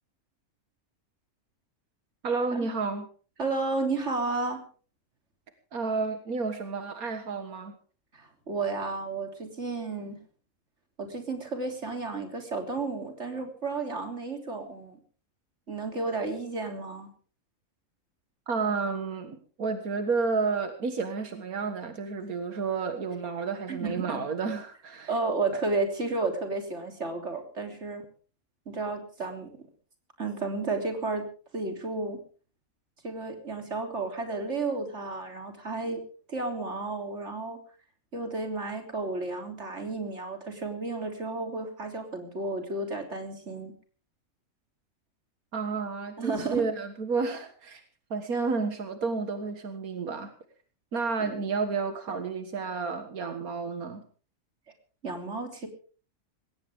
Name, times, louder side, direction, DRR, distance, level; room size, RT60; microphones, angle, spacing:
voice 1, 2.2-3.1 5.7-7.7 18.5-25.1 45.5-47.8 48.1-50.3 50.9-54.0, right 4 dB, 90° right, 7 dB, 2.1 m, -31 dB
voice 2, 3.4-4.6 8.1-10.2 11.0-15.0 15.7-17.1 23.7-24.2 25.1-28.0 28.7-29.5 30.2-31.3 31.5-32.2 33.0-36.0 36.3-37.6 38.1-43.7 46.2-46.7 51.2-51.4 55.0-55.7, right 3 dB, 50° right, 4 dB, 3.7 m, -32 dB
20.5 x 18.0 x 3.7 m, 0.40 s
omnidirectional pair, 1.5 m